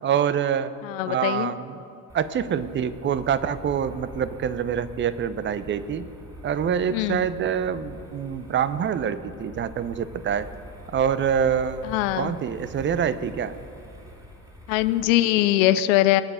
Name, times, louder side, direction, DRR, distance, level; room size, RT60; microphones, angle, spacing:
voice 1, 0.0-0.7 1.1-1.8 2.1-6.0 6.4-10.5 10.9-13.5, right 8 dB, 25° right, 14 dB, 0.6 m, -26 dB
voice 2, 0.8-1.5 6.9-7.2 11.9-12.3 14.7-16.2, left 15 dB, 55° left, 13 dB, 0.6 m, -21 dB
sound 1, 2.1-15.1, equal, 5° right, 2.5 m, -44 dB
20.5 x 9.0 x 4.9 m, 2.5 s
figure-of-eight pair, 70°, 47 cm